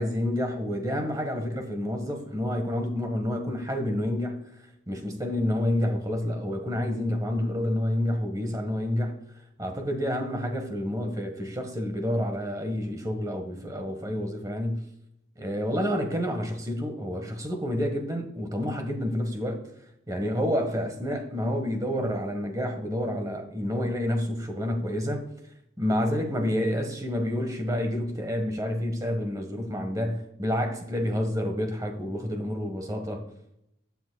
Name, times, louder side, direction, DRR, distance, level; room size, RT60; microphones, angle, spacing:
voice 1, 0.0-4.4 4.9-9.2 9.6-14.9 15.4-19.6 20.1-25.2 25.8-33.2, left 1 dB, 20° right, 1.5 m, -29 dB
15.5 x 9.3 x 2.4 m
head